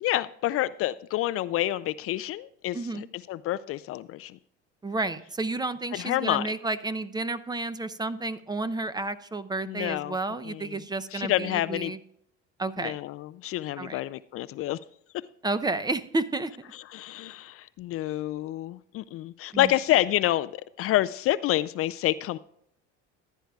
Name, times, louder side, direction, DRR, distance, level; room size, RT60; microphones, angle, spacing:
voice 1, 0.0-4.4 5.9-6.5 9.6-10.2 10.4-10.8 11.1-11.9 12.8-14.8 16.7-22.4, left 15 dB, 45° left, 15 dB, 0.4 m, -28 dB
voice 2, 2.7-3.1 4.8-12.0 12.6-13.0 13.8-14.0 15.4-16.5 19.5-19.7, right 2 dB, 15° right, 13 dB, 0.6 m, -31 dB
15.0 x 10.0 x 2.3 m, 0.72 s
supercardioid pair, 95°, 31 cm